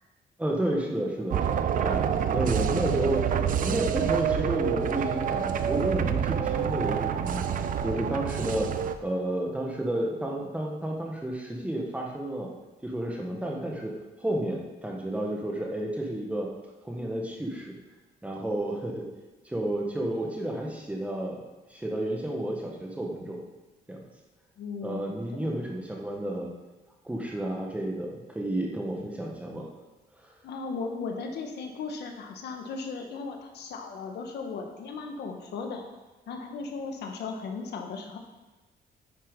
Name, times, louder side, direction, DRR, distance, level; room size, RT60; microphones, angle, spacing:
voice 1, 0.4-3.2 3.6-7.4 7.8-8.7 9.0-12.5 12.8-16.5 16.8-17.7 18.2-19.1 19.4-21.4 21.7-23.4 23.9-24.0 24.8-26.5 27.0-29.7, right 1 dB, 10° right, 0 dB, 1.4 m, -31 dB
sound 1, 1.3-8.9, right 8 dB, 55° right, 0.6 m, -27 dB
voice 2, 24.6-25.6 30.4-35.8 36.3-38.2, left 4 dB, 85° left, 3 dB, 1.5 m, -36 dB
9.9 x 7.1 x 5.3 m, 1.1 s
cardioid pair, 160°, 17 cm